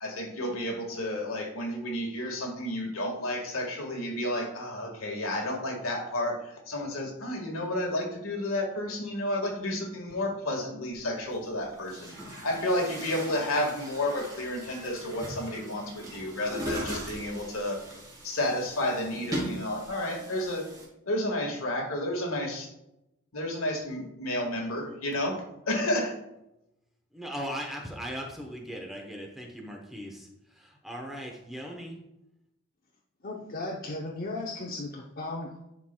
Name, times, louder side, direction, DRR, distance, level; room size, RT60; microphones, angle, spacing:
voice 1, 0.0-17.8 18.2-20.7 21.1-22.7 23.3-26.2, left 1 dB, 80° left, 1 dB, 1.6 m, -31 dB
Chatter / Gurgling / Tap, 10.9-11.0 11.7-20.8, equal, 20° right, 1.7 m, -39 dB
voice 2, 27.1-32.0, equal, ahead, 0 dB, 0.8 m, -39 dB
voice 3, 33.2-35.6, left 2 dB, 45° left, -2 dB, 0.7 m, -36 dB
10.5 x 4.6 x 2.2 m, 0.86 s
head